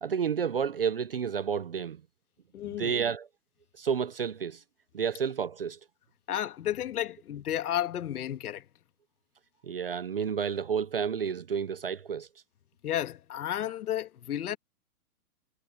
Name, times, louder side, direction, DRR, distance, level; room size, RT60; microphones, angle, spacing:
voice 1, 0.0-2.0 2.7-3.3 3.8-4.6 4.9-5.8 9.6-12.3, right 7 dB, 40° right, 0.4 m, -30 dB
voice 2, 2.5-2.9 6.3-8.6 12.8-14.6, left 11 dB, 75° left, 1.5 m, -32 dB
hypercardioid pair, 175°, 46 cm